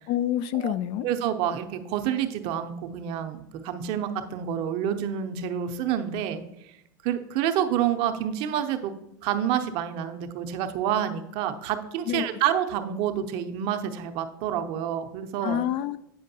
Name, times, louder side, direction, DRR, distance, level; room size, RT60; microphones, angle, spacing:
voice 1, 0.1-1.1 12.1-12.3 15.4-16.0, left 11 dB, 55° left, 15 dB, 0.3 m, -27 dB
voice 2, 1.0-6.4 7.0-8.9 9.2-15.6, right 10 dB, 60° right, 7 dB, 0.7 m, -28 dB
8.5 x 5.1 x 2.8 m, 0.83 s
hypercardioid pair, 90°, 11 cm